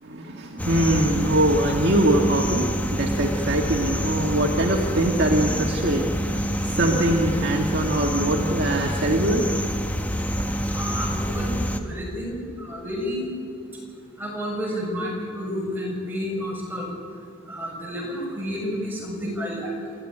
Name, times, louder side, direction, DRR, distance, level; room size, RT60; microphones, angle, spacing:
voice 1, 0.0-9.5, right 1 dB, 50° right, 1 dB, 1.9 m, -23 dB
sound 1, 0.6-11.8, equal, 5° left, 1.2 m, -27 dB
voice 2, 10.7-13.2 14.2-16.9 17.5-19.7, equal, 10° right, -2 dB, 6.7 m, -30 dB
28.0 x 14.0 x 9.9 m, 2.3 s
head